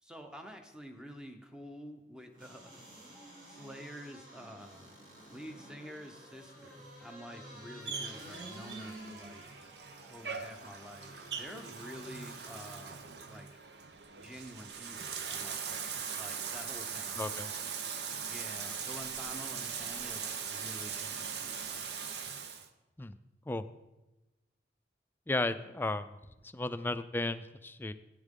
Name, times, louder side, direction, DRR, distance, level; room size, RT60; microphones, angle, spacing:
voice 1, 0.0-2.8 3.4-4.9 5.3-9.5 10.1-13.0 13.3-13.5 14.2-17.7 18.3-21.8, equal, 5° right, 5 dB, 0.8 m, -49 dB
sound 1, 2.3-12.9 13.3-13.4, right 1 dB, 45° right, 3.0 m, -51 dB
Bathtub (filling or washing), 7.8-22.7, right 6 dB, 75° right, 0.8 m, -40 dB
voice 2, 17.2-17.5 23.0-23.2 23.5-23.6 25.3-26.2 26.5-27.9, left 2 dB, 10° left, 11 dB, 0.3 m, -34 dB
13.5 x 9.9 x 3.7 m, 1.0 s
head